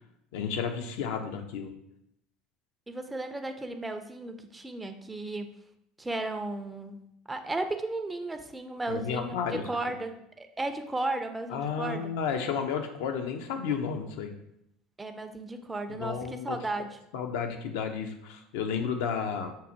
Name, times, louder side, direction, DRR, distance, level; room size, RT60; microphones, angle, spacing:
voice 1, 0.3-1.7 8.9-9.6 11.5-14.3 15.9-16.6 17.1-19.5, left 6 dB, 75° left, 5 dB, 0.4 m, -32 dB
voice 2, 2.9-5.5 6.0-7.0 7.3-12.1 15.0-17.0, right 2 dB, 15° right, 6 dB, 0.3 m, -35 dB
5.3 x 2.1 x 2.7 m, 0.78 s
hypercardioid pair, 80°, 0 cm